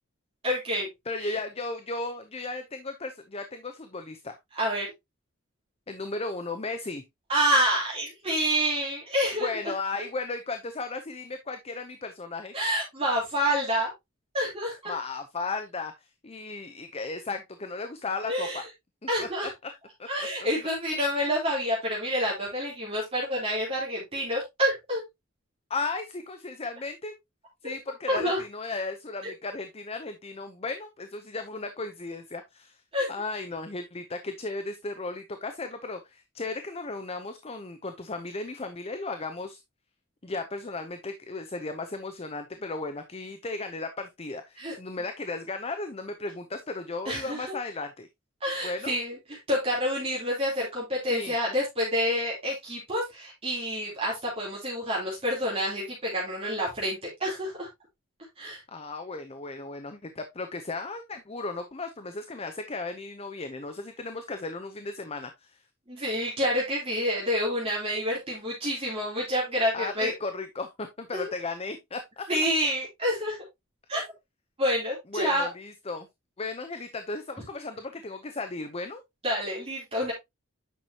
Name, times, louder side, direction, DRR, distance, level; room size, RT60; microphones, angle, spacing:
voice 1, 0.4-0.9 1.2-1.4 4.5-4.9 7.3-9.5 12.5-13.9 14.3-14.9 18.3-18.6 19.1-19.5 20.1-25.0 27.6-27.7 28.1-28.4 32.9-33.1 44.6-44.7 47.0-47.5 48.4-57.7 58.4-58.6 65.9-70.1 71.1-71.3 72.3-73.4 73.9-74.0 74.6-75.5 79.2-80.1, equal, 30° right, 3.2 m, -28 dB
voice 2, 1.1-4.4 5.9-7.0 9.4-12.5 14.9-18.6 19.2-19.3 20.0-20.1 25.7-27.1 27.6-32.8 33.1-39.6 40.2-48.1 48.6-49.0 51.1-51.3 58.7-65.6 69.7-72.3 75.1-76.1 76.4-79.0, left 3 dB, 30° left, 0.7 m, -35 dB
9.3 x 6.0 x 2.8 m
head